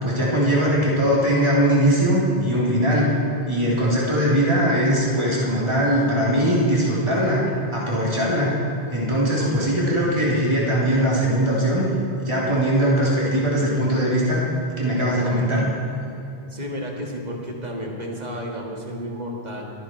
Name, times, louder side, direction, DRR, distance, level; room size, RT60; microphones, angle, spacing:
voice 1, 0.0-3.2 3.5-8.6 8.9-11.9 12.2-14.4 14.8-15.7, equal, 30° right, -6 dB, 3.5 m, -20 dB
voice 2, 9.4-9.9 16.5-19.7, equal, 45° right, 0 dB, 2.0 m, -32 dB
23.5 x 9.2 x 4.6 m, 2.9 s
omnidirectional pair, 1.0 m